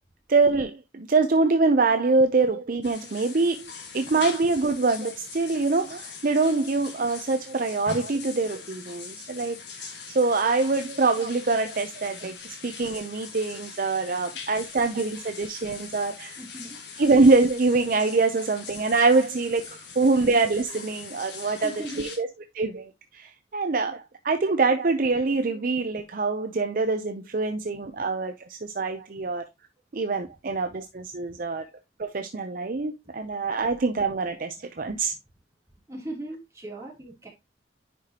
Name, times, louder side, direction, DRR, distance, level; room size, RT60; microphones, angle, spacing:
voice 1, 0.3-16.4 17.0-22.3 22.5-29.5 29.9-31.7 32.0-35.1, right 3 dB, 45° right, 0.6 m, -24 dB
sound 1, 2.8-22.2, left 5 dB, 65° left, 1.7 m, -42 dB
voice 2, 16.4-16.8 21.4-22.1 35.9-37.3, right 1 dB, 15° right, 2.9 m, -38 dB
9.8 x 4.9 x 2.9 m
head